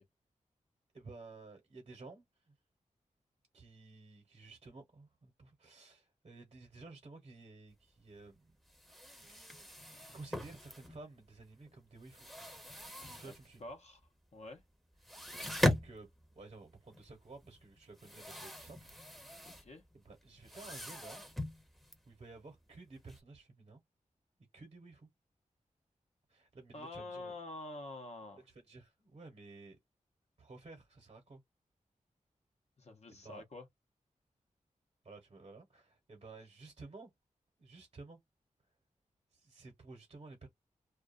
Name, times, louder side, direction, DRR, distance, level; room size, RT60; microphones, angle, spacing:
voice 1, 0.9-2.5 3.5-8.6 9.2-9.6 10.1-12.3 13.1-13.6 15.2-16.1 16.3-19.5 19.9-21.2 22.0-23.8 24.5-25.1 26.3-27.3 28.5-29.8 30.4-31.4 33.1-33.4 35.0-37.1 37.6-38.2 39.3-40.5, right 3 dB, 50° right, 1.0 m, -53 dB
sound 1, 8.0-8.1 8.3-8.4 8.7-11.3 11.6-13.7 14.0-14.1 14.5-14.6 14.9-23.2, left 1 dB, ahead, 0.8 m, -40 dB
voice 2, 13.6-14.0 14.3-14.6 19.4-19.8 26.7-28.4 32.8-33.7, left 2 dB, 55° left, 0.7 m, -47 dB
2.4 x 2.2 x 2.4 m
wide cardioid pair, 75°, 13 cm